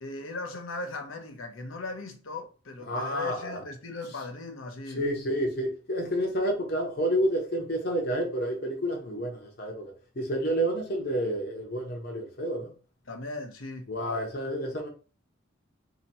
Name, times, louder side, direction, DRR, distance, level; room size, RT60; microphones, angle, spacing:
voice 1, 0.0-5.0 13.1-13.9, left 2 dB, 80° left, 0.8 m, -38 dB
voice 2, 2.9-3.6 4.9-12.7 13.9-14.9, equal, 50° left, 0.9 m, -29 dB
2.9 x 2.8 x 4.0 m
head